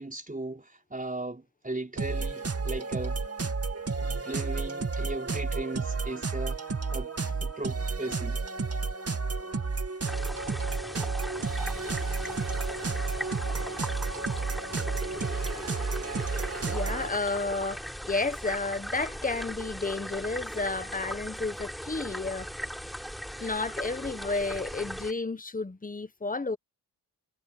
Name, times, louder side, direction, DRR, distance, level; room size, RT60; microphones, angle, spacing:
voice 1, 0.0-3.2 4.0-6.6 6.9-7.1 7.4-8.4, right 2 dB, 20° right, 4.7 m, -37 dB
sound 1, 2.0-17.1, right 4 dB, 35° right, 2.2 m, -31 dB
sound 2, 10.1-25.1, equal, ahead, 6.7 m, -38 dB
voice 2, 16.7-22.5 23.4-26.6, left 3 dB, 20° left, 1.2 m, -32 dB
cardioid pair, 70°, 40 cm